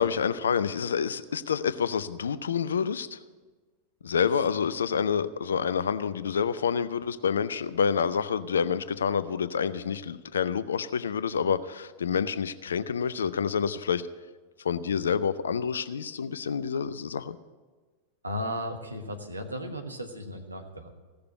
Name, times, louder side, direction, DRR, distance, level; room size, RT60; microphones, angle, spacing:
voice 1, 0.0-3.2 4.0-14.0 14.6-17.4, left 7 dB, 70° left, 0.5 m, -28 dB
voice 2, 18.2-20.9, equal, 80° right, 1.3 m, -35 dB
16.0 x 6.8 x 9.0 m
figure-of-eight pair, 90°, 0 cm